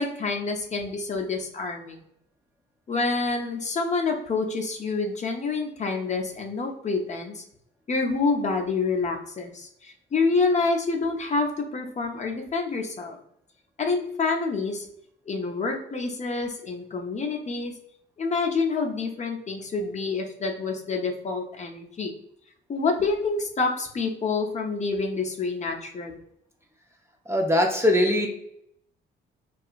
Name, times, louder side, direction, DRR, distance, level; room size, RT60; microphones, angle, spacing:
voice 1, 0.0-2.0 2.9-7.4 7.9-13.2 13.8-14.9 15.3-17.7 18.2-22.1 22.7-26.1, left 4 dB, 35° left, 1 dB, 0.6 m, -27 dB
voice 2, 27.3-28.3, left 1 dB, 15° right, 1 dB, 0.5 m, -21 dB
2.7 x 2.4 x 2.4 m, 0.73 s
cardioid pair, 90°, 20 cm